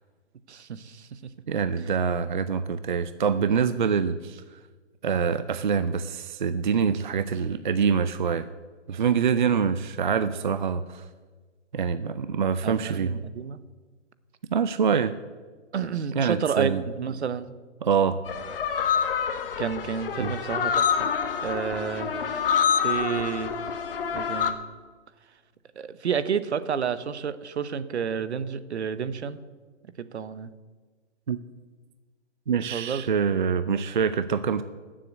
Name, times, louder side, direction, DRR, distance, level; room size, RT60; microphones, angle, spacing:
voice 1, 0.5-1.3 12.6-13.6 15.7-17.5 19.6-21.1 21.4-22.5 22.8-23.5 24.1-24.6 25.8-29.4 30.1-30.5 32.7-33.0, right 7 dB, 65° right, 14 dB, 1.0 m, -30 dB
voice 2, 1.5-4.6 5.0-8.5 8.9-11.1 11.7-13.1 14.5-15.1 16.1-16.8 17.8-18.2 20.2-20.3 31.3-31.4 32.5-34.6, right 6 dB, 45° right, 12 dB, 0.4 m, -25 dB
sound 1, 18.3-24.5, left 7 dB, 50° left, 1.3 m, -27 dB
13.0 x 7.7 x 8.1 m, 1.4 s
hypercardioid pair, 160°, 36 cm